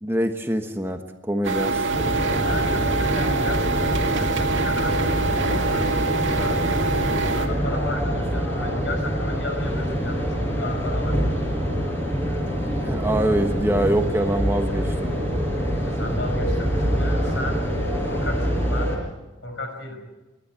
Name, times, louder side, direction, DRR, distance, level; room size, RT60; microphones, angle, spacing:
voice 1, 0.0-1.0 1.3-1.8 12.8-15.2, right 1 dB, 10° right, 5 dB, 1.2 m, -24 dB
sound 1, 1.4-7.5, right 3 dB, 85° right, 2.1 m, -25 dB
sound 2, 1.9-19.0, equal, 15° left, 5.3 m, -25 dB
voice 2, 2.4-7.1 7.4-11.2 15.8-17.7 18.0-19.0 19.4-20.0, left 2 dB, 75° left, 5 dB, 5.4 m, -34 dB
27.5 x 12.0 x 8.9 m, 1.1 s
head